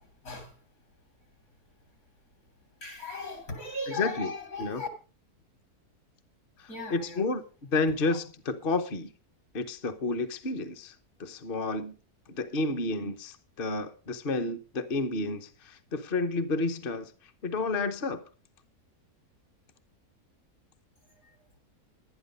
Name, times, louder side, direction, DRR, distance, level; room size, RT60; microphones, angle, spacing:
voice 1, 2.8-4.9 6.7-7.3 8.1-8.2, left 3 dB, 65° left, 4.0 m, -37 dB
voice 2, 3.9-4.3 4.6-4.8 6.6-9.1 9.5-10.9 11.2-11.9 12.3-17.1 17.4-18.2, left 3 dB, 40° left, 1.0 m, -31 dB
11.5 x 10.5 x 5.3 m
omnidirectional pair, 1.6 m